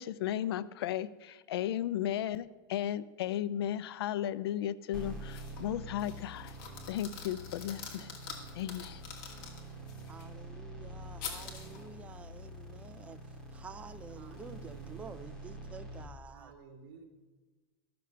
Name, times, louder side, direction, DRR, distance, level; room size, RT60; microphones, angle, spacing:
voice 1, 0.0-6.6 6.9-8.1 8.5-9.0, left 11 dB, 85° left, 17 dB, 0.5 m, -35 dB
sound 1, 4.9-16.0, right 1 dB, 5° left, 1.8 m, -46 dB
sound 2, 5.3-5.7 6.0-10.2 11.2-11.8, left 6 dB, 55° left, 2.3 m, -46 dB
voice 2, 10.1-13.2 13.5-16.5, right 5 dB, 10° right, 11 dB, 0.3 m, -49 dB
voice 3, 14.2-15.4 16.3-17.1, right 4 dB, 55° right, -2 dB, 1.8 m, -54 dB
13.0 x 6.7 x 6.6 m, 1.3 s
supercardioid pair, 165°, 13 cm